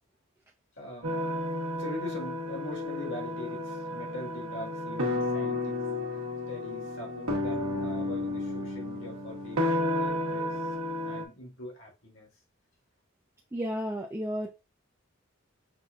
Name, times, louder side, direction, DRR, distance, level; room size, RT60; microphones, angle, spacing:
voice 1, 0.7-1.2 1.6-5.9 6.5-10.7 11.0-12.3, left 1 dB, 65° left, 1.7 m, -42 dB
sound 1, 1.0-11.2, left 1 dB, 85° right, 1.2 m, -32 dB
voice 2, 13.5-14.5, equal, 15° right, 0.3 m, -32 dB
5.8 x 2.5 x 2.4 m
head